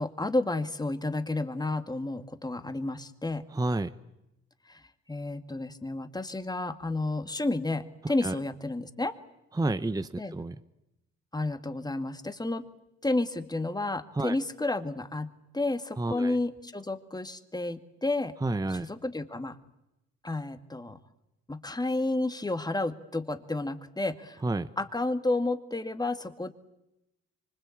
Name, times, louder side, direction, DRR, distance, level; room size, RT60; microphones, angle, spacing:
voice 1, 0.0-3.4 4.7-4.8 5.1-9.1 10.2-10.3 11.3-12.6 13.0-18.3 18.7-19.6 20.2-21.0 21.5-24.4 24.8-26.5, left 2 dB, 15° left, 10 dB, 2.1 m, -31 dB
voice 2, 3.5-3.9 8.2-8.3 9.5-10.6 14.1-14.3 16.0-16.4 18.4-18.9 24.4-24.7, right 2 dB, 10° right, 12 dB, 0.9 m, -30 dB
25.5 x 25.5 x 8.6 m, 0.91 s
cardioid pair, 90°, 30 cm